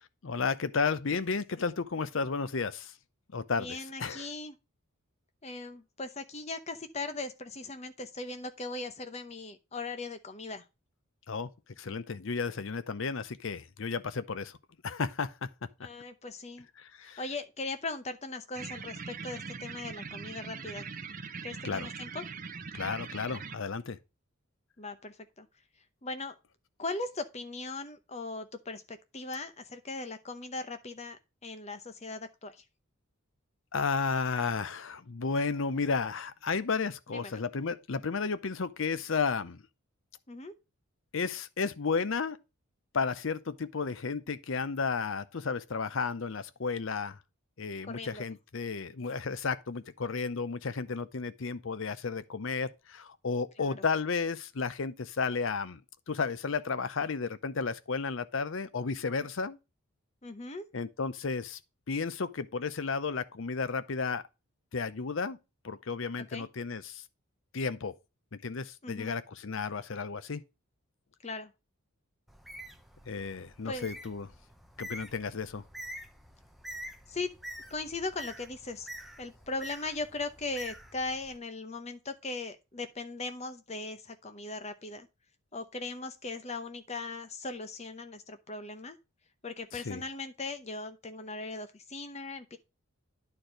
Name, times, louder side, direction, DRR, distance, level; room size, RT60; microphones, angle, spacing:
voice 1, 0.2-2.9 3.3-4.3 11.3-11.5 11.8-14.5 14.8-15.5 15.8-15.9 16.8-17.2 21.6-21.9 22.7-24.0 33.7-39.6 41.1-42.4 42.9-47.2 47.6-55.8 56.1-59.6 60.7-61.6 61.9-64.2 64.7-65.4 65.6-67.0 67.5-67.9 68.3-70.4 73.1-74.3 74.8-75.6 89.7-90.0, left 4 dB, 60° left, 0.6 m, -33 dB
voice 2, 3.6-4.6 5.4-10.6 15.8-16.7 17.0-20.8 21.4-22.2 24.8-25.5 26.0-26.3 26.8-32.6 37.1-37.4 40.3-40.5 47.8-48.3 53.6-53.7 60.2-60.6 66.3-66.5 68.8-69.1 71.2-71.5 73.7-73.9 77.1-77.3 77.7-78.9 79.2-85.1 85.5-89.0 89.4-92.6, left 3 dB, 30° left, 0.8 m, -39 dB
sound 1, 18.5-23.5, right 5 dB, 40° right, 0.6 m, -41 dB
Bird, 72.3-81.4, right 1 dB, ahead, 0.6 m, -47 dB
9.7 x 4.5 x 5.0 m
head